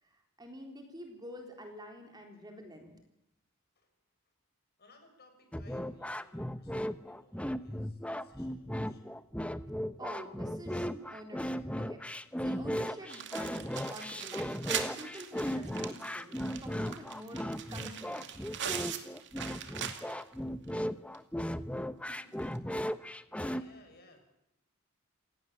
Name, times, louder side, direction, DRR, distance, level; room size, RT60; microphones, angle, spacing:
voice 1, 0.0-2.9 10.0-18.3 22.1-22.3, equal, 20° right, 3 dB, 3.8 m, -48 dB
voice 2, 4.8-9.1 23.3-24.2, left 2 dB, 45° left, 5 dB, 6.7 m, -60 dB
sound 1, 5.5-23.6, equal, 5° left, 0.9 m, -36 dB
sound 2, 13.1-20.3 20.7-20.8 21.1-21.2 22.4-22.6, right 8 dB, 55° right, 2.4 m, -41 dB
29.0 x 17.5 x 7.5 m, 0.80 s
head